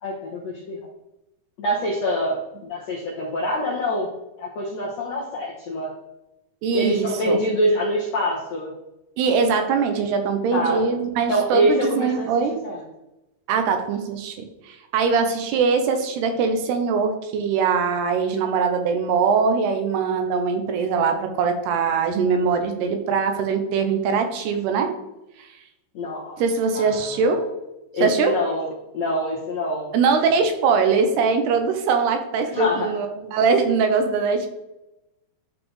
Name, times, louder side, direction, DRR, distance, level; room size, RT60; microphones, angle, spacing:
voice 1, 0.0-0.8 1.6-2.4 2.6-4.1 4.4-5.9 6.7-8.7 10.5-10.8 11.3-12.8 25.9-26.4 26.7-27.4 27.9-28.7 28.9-29.9 32.5-32.9, equal, 70° left, -4 dB, 1.6 m, -25 dB
voice 2, 6.6-7.4 9.2-12.6 13.5-14.4 14.6-24.9 26.4-27.4 28.0-28.4 29.9-34.5, right 5 dB, 80° right, 6 dB, 2.9 m, -22 dB
11.5 x 4.2 x 3.3 m, 0.92 s
omnidirectional pair, 4.7 m